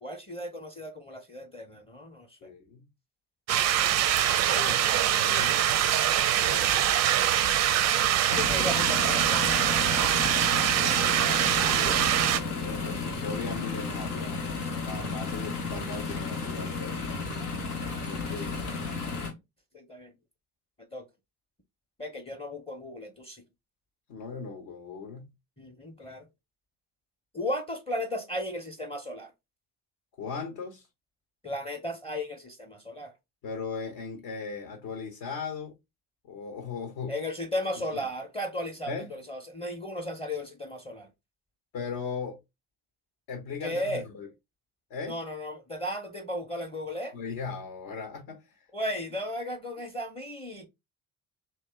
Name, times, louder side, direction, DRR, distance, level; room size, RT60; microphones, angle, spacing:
voice 1, 0.0-2.4 4.3-5.1 8.3-10.0 18.3-18.4 19.1-19.3 19.7-20.1 20.9-21.1 22.0-23.4 25.6-26.3 27.3-29.3 31.4-33.1 37.1-41.1 43.6-44.0 45.1-47.2 48.7-50.7, left 1 dB, 15° left, 0.7 m, -35 dB
voice 2, 2.4-2.8 4.4-4.9 5.2-5.7 6.4-6.8 10.6-14.4 14.8-17.2 18.0-18.6 24.1-25.3 30.2-30.9 33.4-35.8 36.2-37.2 37.9-38.0 38.9-39.1 41.7-42.4 43.3-44.3 44.9-45.2 47.1-48.7, left 5 dB, 55° left, 0.8 m, -38 dB
sound 1, 3.5-12.4, right 11 dB, 40° right, 0.4 m, -24 dB
sound 2, 8.3-19.3, left 4 dB, 80° left, 0.9 m, -33 dB
3.2 x 2.8 x 3.3 m
figure-of-eight pair, 45°, 45 cm